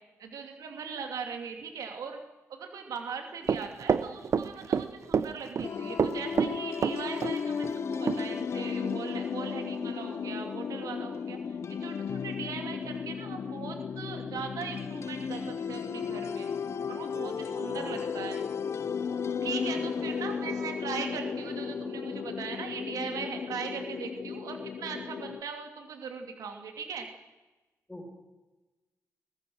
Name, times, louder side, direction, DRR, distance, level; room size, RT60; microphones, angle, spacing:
voice 1, 0.2-2.2 2.5-16.5 16.9-18.4 19.4-27.1, right 6 dB, 90° right, 3 dB, 2.8 m, -39 dB
Run, 3.5-4.9 5.1-5.7 6.0-7.3 7.6-7.7 8.1-8.2, right 6 dB, 55° right, 1.0 m, -27 dB
sound 1, 5.6-25.4, left 6 dB, 50° left, 0.8 m, -34 dB
voice 2, 19.7-20.3 27.9-28.1, equal, 10° left, 0 dB, 5.1 m, -44 dB
22.5 x 20.0 x 6.4 m, 1.1 s
wide cardioid pair, 120°, 6 cm